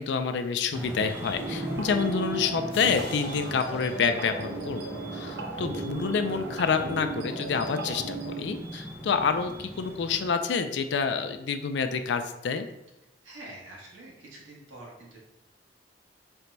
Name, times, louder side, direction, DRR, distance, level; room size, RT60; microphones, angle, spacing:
voice 1, 0.0-12.7, left 5 dB, 65° left, 8 dB, 0.3 m, -28 dB
sound 1, 0.7-10.3, equal, 15° right, 0.5 m, -40 dB
sound 2, 1.3-8.4, right 3 dB, 65° right, 0.5 m, -36 dB
sound 3, 2.7-5.4, left 2 dB, 30° left, 0.9 m, -48 dB
voice 2, 13.2-15.2, right 1 dB, 90° right, -4 dB, 1.3 m, -46 dB
4.5 x 2.2 x 3.9 m, 0.91 s
head